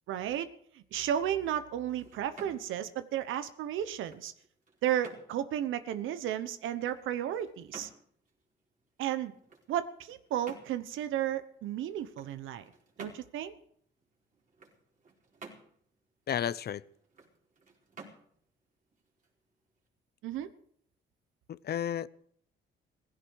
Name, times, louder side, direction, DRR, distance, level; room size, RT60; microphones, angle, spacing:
voice 1, 0.1-0.5 0.7-4.3 4.8-7.9 9.0-9.3 9.7-12.7 13.0-13.5 20.2-20.5, right 11 dB, 85° right, 1.1 m, -33 dB
sound 1, 1.1-19.9, right 4 dB, 40° right, 4.6 m, -55 dB
voice 2, 16.3-16.8 21.5-22.1, left 9 dB, 55° left, 0.7 m, -32 dB
16.5 x 16.0 x 4.8 m
cardioid pair, 90°, 20 cm